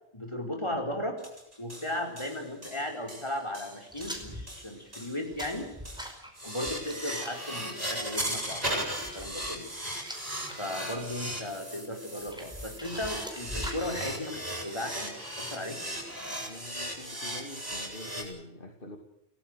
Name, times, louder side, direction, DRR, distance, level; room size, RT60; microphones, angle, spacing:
voice 1, 0.1-1.2 1.6-5.7 6.4-9.7 10.6-15.8, left 1 dB, 25° left, 3 dB, 5.2 m, -36 dB
sound 1, 1.2-18.2, right 1 dB, 35° right, 8.1 m, -37 dB
sound 2, 3.9-10.6 11.0-11.5 12.0-13.9, equal, 5° right, 5.1 m, -43 dB
voice 2, 16.5-19.0, left 1 dB, 55° left, 4 dB, 3.0 m, -45 dB
28.5 x 18.5 x 6.7 m, 0.82 s
omnidirectional pair, 1.1 m